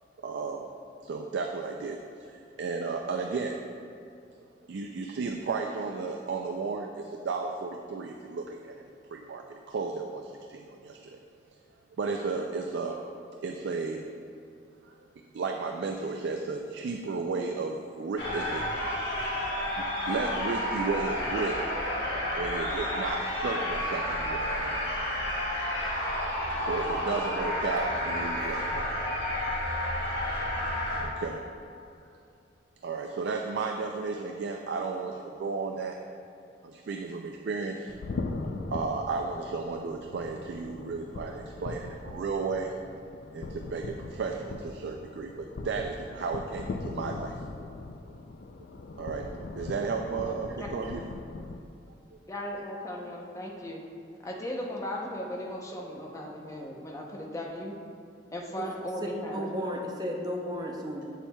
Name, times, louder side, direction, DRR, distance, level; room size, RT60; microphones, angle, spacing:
voice 1, 0.2-0.7 1.0-3.6 4.7-8.8 9.1-11.2 12.0-14.0 14.8-14.9 15.3-18.7 18.9-19.1 19.7-21.8 22.4-24.8 26.0-26.2 26.6-28.9 30.9-31.4 32.8-36.0 36.6-37.9 38.7-42.7 43.3-47.4 49.0-49.3 49.6-51.1, right 4 dB, 70° right, 3 dB, 0.3 m, -34 dB
sound 1, 18.2-31.1, left 1 dB, 80° left, 1.2 m, -31 dB
sound 2, 37.9-51.6, left 3 dB, 55° left, 0.3 m, -40 dB
voice 2, 50.2-50.9 52.3-53.8 54.2-57.7 58.3-59.5, left 1 dB, 15° left, -1 dB, 0.6 m, -37 dB
voice 3, 59.3-61.0, equal, 20° right, 0 dB, 0.6 m, -33 dB
7.1 x 7.1 x 2.2 m, 2.5 s
head